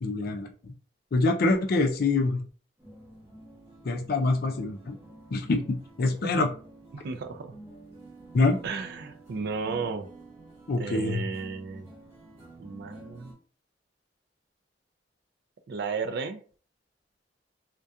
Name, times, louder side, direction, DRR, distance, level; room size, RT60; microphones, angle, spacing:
voice 1, 0.0-0.7 1.1-2.4 3.8-4.9 5.3-6.5 8.3-8.6 10.7-11.2, left 3 dB, 55° left, 0.4 m, -25 dB
sound 1, 2.8-13.3, right 1 dB, 15° right, 0.9 m, -49 dB
voice 2, 6.9-7.6 8.6-10.1 10.8-11.9 12.6-13.3 15.7-16.4, right 4 dB, 60° right, 0.3 m, -34 dB
2.3 x 2.2 x 2.6 m
head